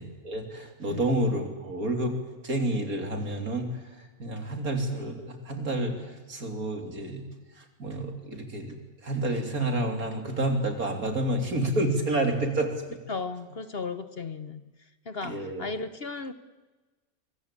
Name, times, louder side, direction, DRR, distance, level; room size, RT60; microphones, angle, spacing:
voice 1, 0.0-2.2 2.4-3.7 4.2-7.2 7.8-8.8 9.0-12.7 15.2-15.6, right 1 dB, 75° right, 4 dB, 3.8 m, -29 dB
voice 2, 13.1-14.6 15.0-16.3, left 4 dB, 45° left, 11 dB, 1.3 m, -35 dB
23.5 x 23.5 x 8.5 m, 1.2 s
omnidirectional pair, 1.5 m